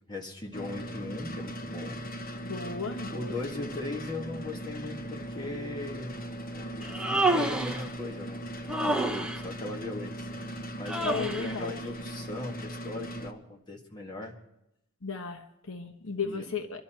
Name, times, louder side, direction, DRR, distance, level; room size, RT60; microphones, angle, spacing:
voice 1, 0.1-2.0 3.1-6.2 6.5-8.4 8.8-9.1 9.4-10.3 10.7-14.3 16.2-16.4, left 2 dB, 20° left, -2 dB, 1.8 m, -39 dB
sound 1, 0.5-13.3, equal, 40° left, 1.1 m, -39 dB
voice 2, 2.4-3.4 11.0-11.7 15.0-16.8, left 5 dB, 65° left, 5 dB, 1.2 m, -35 dB
Human voice, 6.8-7.9 8.7-9.4 10.9-11.6, right 2 dB, 5° right, 0.8 m, -28 dB
24.5 x 12.0 x 4.5 m, 0.84 s
head